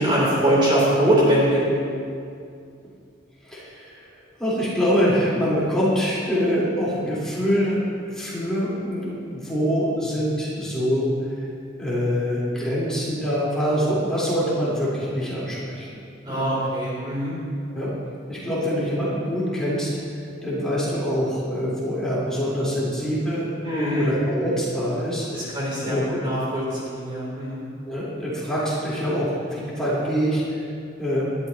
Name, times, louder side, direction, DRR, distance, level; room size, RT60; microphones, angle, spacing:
voice 1, 0.0-1.6 16.2-17.3 23.6-24.1 25.3-27.6, right 1 dB, 25° right, -7 dB, 3.1 m, -22 dB
voice 2, 3.4-4.0 4.4-7.8 8.1-11.1 11.8-16.5 17.7-17.9 18.3-23.5 23.9-25.5 25.8-26.2 27.9-30.7 31.0-31.3, equal, 5° left, -9 dB, 3.7 m, -25 dB
19.5 x 13.0 x 2.9 m, 2.3 s
head